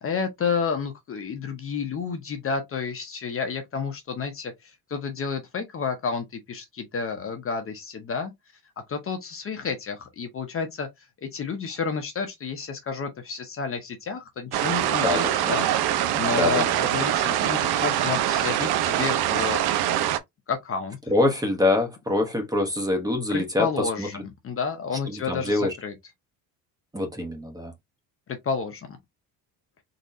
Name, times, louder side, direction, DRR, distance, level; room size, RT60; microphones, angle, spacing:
voice 1, 0.0-8.3 8.9-10.9 11.2-19.6 20.5-21.0 23.3-25.9 28.3-29.0, left 5 dB, 35° left, 0.8 m, -30 dB
sound 1, 14.5-20.2, right 11 dB, 75° right, 0.7 m, -24 dB
voice 2, 15.0-15.6 16.4-16.6 21.1-24.1 25.1-25.7 26.9-27.7, left 2 dB, 10° right, 0.9 m, -25 dB
4.0 x 2.9 x 2.6 m
cardioid pair, 135°, 38 cm